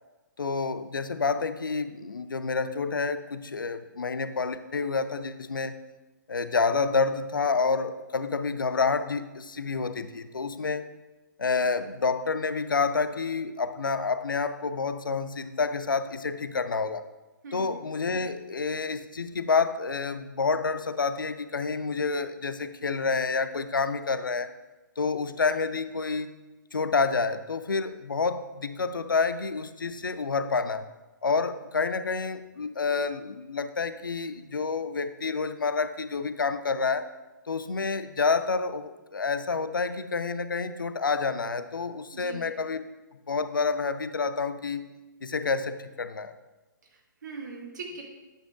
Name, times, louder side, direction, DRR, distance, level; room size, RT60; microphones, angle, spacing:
voice 1, 0.4-5.8 6.3-10.9 11.4-17.0 17.5-24.5 25.0-26.3 26.7-30.9 31.2-37.1 37.5-42.8 43.3-44.9 45.2-46.3, left 4 dB, 75° left, 12 dB, 0.5 m, -28 dB
voice 2, 42.1-42.4 46.9-48.0, right 4 dB, 60° right, 1 dB, 1.6 m, -41 dB
9.0 x 7.1 x 2.4 m, 1.1 s
figure-of-eight pair, 120°, 11 cm